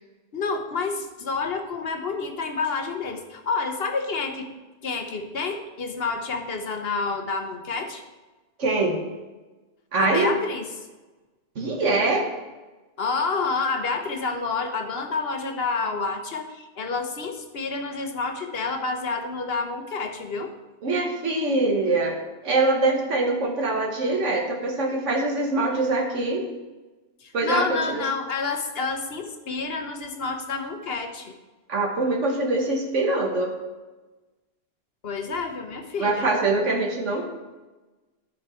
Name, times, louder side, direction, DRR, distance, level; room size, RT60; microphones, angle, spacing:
voice 1, 0.3-4.5 4.8-8.0 10.0-10.7 13.0-20.5 27.2-31.3 35.0-36.4, left 4 dB, 55° left, 5 dB, 1.1 m, -29 dB
voice 2, 8.6-9.0 9.9-10.3 11.5-12.2 20.8-22.2 22.4-26.4 27.3-27.8 31.7-33.5 36.0-37.3, right 2 dB, 80° right, 0 dB, 1.6 m, -23 dB
13.0 x 4.7 x 4.4 m, 1.2 s
omnidirectional pair, 1.2 m